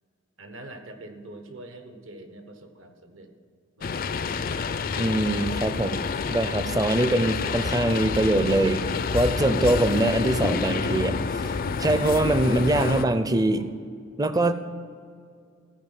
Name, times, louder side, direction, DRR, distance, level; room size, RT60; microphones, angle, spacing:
voice 1, 0.4-3.3 3.8-4.3 9.1-9.3 13.6-13.7, right 2 dB, 70° right, 6 dB, 1.3 m, -44 dB
sound 1, 3.8-13.0, left 5 dB, 45° left, 0.4 m, -28 dB
voice 2, 5.0-8.8 9.1-13.7 14.2-14.5, right 1 dB, 20° right, 11 dB, 0.5 m, -23 dB
14.5 x 5.0 x 9.2 m, 2.2 s
head